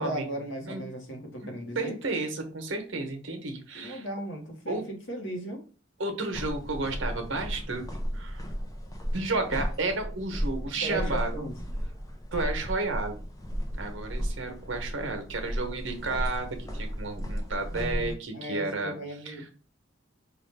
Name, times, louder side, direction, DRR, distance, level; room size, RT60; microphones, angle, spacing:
voice 1, 0.0-2.0 3.7-5.6 10.8-11.5 17.7-19.5, right 1 dB, 70° left, 2 dB, 1.1 m, -36 dB
voice 2, 1.4-4.1 4.7-4.9 6.0-7.8 8.1-8.5 9.1-11.5 12.3-13.2 13.7-18.9 19.2-19.5, right 3 dB, 75° right, 5 dB, 0.9 m, -32 dB
sound 1, 6.3-18.1, equal, 20° left, 0.6 m, -34 dB
4.9 x 2.4 x 3.3 m, 0.38 s
head